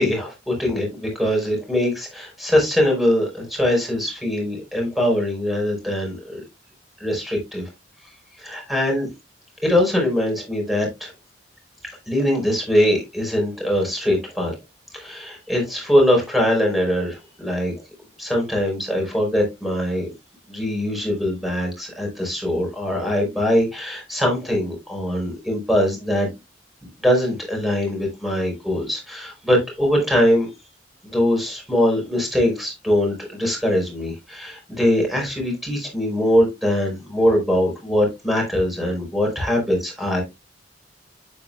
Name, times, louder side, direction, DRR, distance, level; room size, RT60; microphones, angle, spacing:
voice 1, 0.0-6.4 7.0-7.7 8.4-9.1 9.6-11.1 12.1-14.5 14.9-17.7 18.2-20.1 20.5-26.3 27.0-30.5 31.0-40.2, left 1 dB, ahead, 4.9 m, -22 dB
9.0 x 8.9 x 2.3 m
head